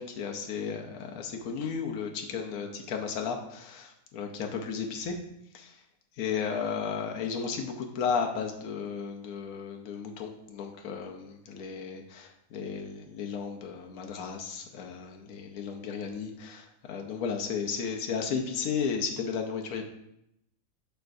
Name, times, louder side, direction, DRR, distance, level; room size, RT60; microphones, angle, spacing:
voice 1, 0.0-5.2 5.5-5.8 6.2-19.8, left 6 dB, 85° left, 2 dB, 1.2 m, -34 dB
6.8 x 6.1 x 2.6 m, 0.80 s
omnidirectional pair, 1.5 m